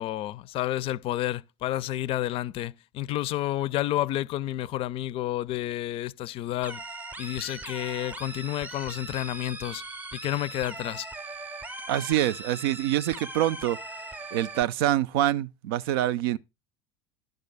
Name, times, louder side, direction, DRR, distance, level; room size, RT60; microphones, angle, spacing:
voice 1, 0.0-6.8 7.2-9.8 10.1-11.1, left 14 dB, 45° left, 0.5 m, -30 dB
sound 1, 6.6-14.6, right 2 dB, 10° right, 0.7 m, -40 dB
voice 2, 11.9-13.8 14.3-16.4, right 13 dB, 65° right, 0.5 m, -25 dB
11.0 x 3.9 x 6.8 m
hypercardioid pair, 75°, 13 cm